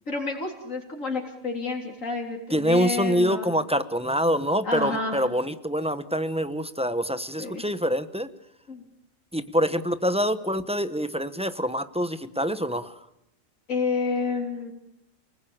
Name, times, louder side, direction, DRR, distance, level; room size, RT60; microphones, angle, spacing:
voice 1, 0.1-3.5 4.6-5.2 7.4-7.6 8.7-8.8 13.7-14.7, left 4 dB, 75° left, 1 dB, 3.9 m, -29 dB
voice 2, 2.5-8.3 9.3-12.9, equal, 5° right, 11 dB, 1.0 m, -25 dB
29.5 x 20.0 x 8.8 m, 0.86 s
omnidirectional pair, 1.4 m